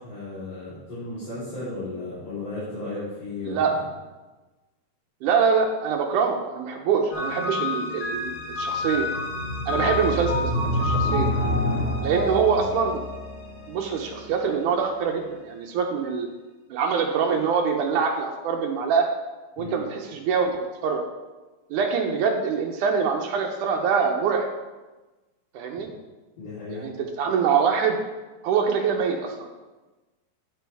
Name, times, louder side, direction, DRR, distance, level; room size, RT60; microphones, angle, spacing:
voice 1, 0.0-3.8 9.7-10.0 12.2-12.7 19.6-19.8 26.4-26.9, left 2 dB, 40° left, -14 dB, 4.3 m, -35 dB
voice 2, 5.2-9.1 9.7-11.3 12.0-13.0 13.7-16.3 16.7-19.1 19.6-20.5 20.8-21.0 21.7-24.5 25.5-25.9 26.7-26.9 27.2-28.0 28.4-29.6, right 6 dB, 90° right, 1 dB, 1.7 m, -24 dB
sound 1, 7.1-14.4, left 2 dB, 70° left, 4.2 m, -27 dB
9.3 x 9.1 x 3.4 m, 1.2 s
omnidirectional pair, 4.5 m